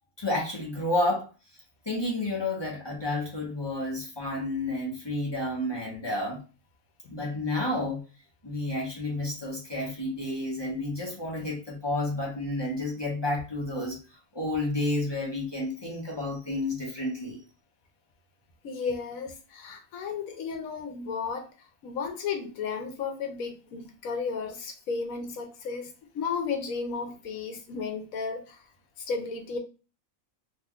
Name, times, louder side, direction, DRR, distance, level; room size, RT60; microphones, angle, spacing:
voice 1, 0.2-1.3 1.9-6.4 7.1-8.0 8.4-14.0 14.3-17.4, left 1 dB, 25° left, 0.7 m, -30 dB
voice 2, 18.6-21.5 21.8-28.6 29.1-29.6, left 5 dB, 80° left, 1.1 m, -33 dB
2.9 x 2.2 x 3.5 m
omnidirectional pair, 1.5 m